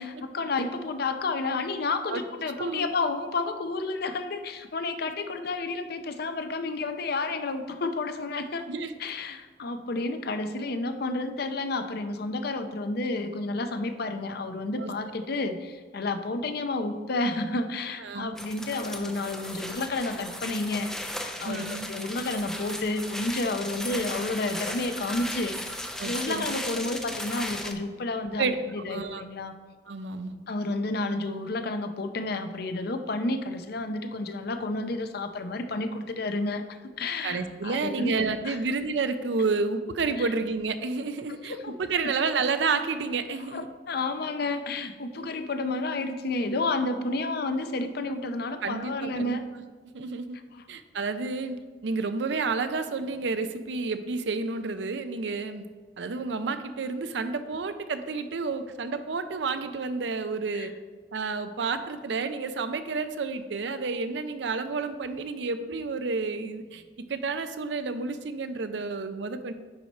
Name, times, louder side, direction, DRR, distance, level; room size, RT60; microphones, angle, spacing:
voice 1, 0.0-8.6 9.0-21.1 21.4-25.8 26.0-29.6 30.5-38.6 40.2-40.3 41.5-41.8 43.5-49.4 50.5-50.6 60.5-60.7, left 2 dB, 60° left, 8 dB, 0.6 m, -31 dB
voice 2, 2.6-2.9 8.7-8.9 14.8-14.9 18.0-18.3 21.4-21.9 26.0-26.5 28.4-28.6 28.9-29.2 29.9-30.3 37.2-43.7 45.2-45.3 48.6-49.4 49.9-50.4 50.7-55.6 56.0-60.7 61.1-69.5, right 4 dB, 75° right, 10 dB, 0.5 m, -30 dB
sound 1, 18.4-27.7, left 1 dB, 5° left, 0.5 m, -36 dB
9.6 x 4.6 x 4.1 m, 1.4 s
head